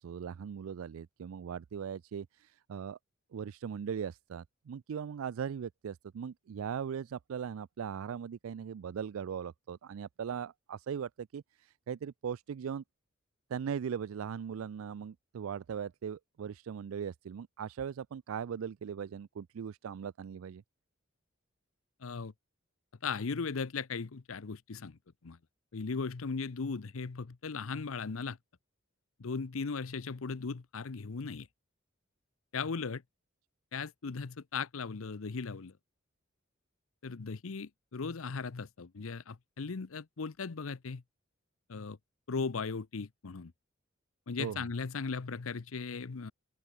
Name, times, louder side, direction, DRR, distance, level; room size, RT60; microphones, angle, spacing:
voice 1, 0.0-3.0 3.3-12.8 13.5-20.6 44.4-44.6, right 7 dB, 90° right, 0.4 m, -39 dB
voice 2, 22.0-22.3 23.0-25.4 25.7-28.4 29.2-31.5 32.5-33.0 33.7-35.7 37.0-41.0 41.7-42.0 42.3-43.5 44.3-46.3, left 4 dB, 85° left, 0.7 m, -37 dB
open air
head